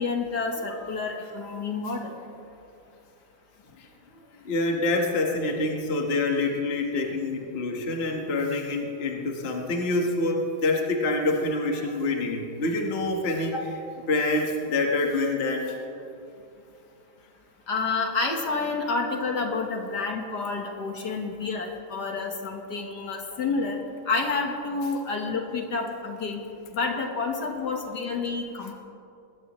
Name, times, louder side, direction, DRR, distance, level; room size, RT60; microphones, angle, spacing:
voice 1, 0.0-2.1 13.5-13.6 17.7-23.8 24.1-26.4 26.7-28.7, left 4 dB, 55° left, 2 dB, 1.8 m, -29 dB
voice 2, 4.4-13.5 14.1-15.8, left 2 dB, 35° left, 1 dB, 1.3 m, -26 dB
21.0 x 16.0 x 3.1 m, 2.6 s
omnidirectional pair, 2.3 m